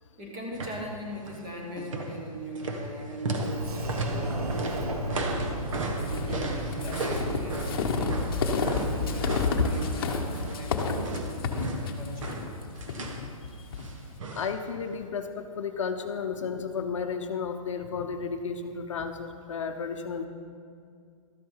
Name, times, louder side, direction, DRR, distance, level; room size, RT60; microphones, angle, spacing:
voice 1, 0.2-4.1 4.3-5.4 6.0-8.2 8.5-11.3 11.8-12.3, right 1 dB, 15° right, -1 dB, 1.2 m, -40 dB
sound 1, 0.5-0.9 1.2-1.5 1.8-10.7 11.0-13.3 13.8-14.6 14.8-14.9, right 2 dB, 60° right, 1.3 m, -35 dB
Sliding door, 3.4-9.3, right 1 dB, 80° right, 1.5 m, -34 dB
sound 2, 6.0-13.9, left 4 dB, 40° left, 1.0 m, -30 dB
voice 2, 14.3-20.3, left 6 dB, 55° left, 6 dB, 0.7 m, -33 dB
13.0 x 7.5 x 5.6 m, 2.3 s
hypercardioid pair, 175°, 19 cm